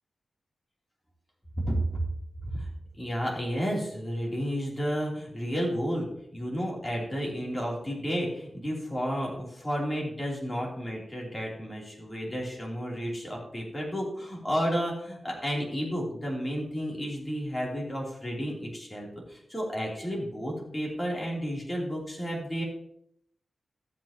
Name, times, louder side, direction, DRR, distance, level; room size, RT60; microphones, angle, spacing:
voice 1, 1.6-2.0 2.4-2.7 3.0-22.6, equal, 15° left, -3 dB, 3.1 m, -32 dB
13.5 x 7.8 x 2.9 m, 0.71 s
wide cardioid pair, 125°, 0 cm